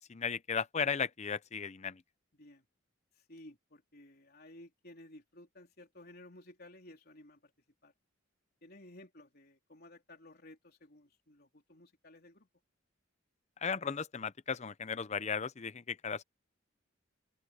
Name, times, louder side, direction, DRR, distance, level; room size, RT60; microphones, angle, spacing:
voice 1, 0.1-2.0 13.6-16.2, left 6 dB, 35° left, 0.6 m, -35 dB
voice 2, 2.3-2.6 3.1-7.5 7.8-7.9 8.6-12.5, left 1 dB, 50° left, 3.9 m, -55 dB
open air
head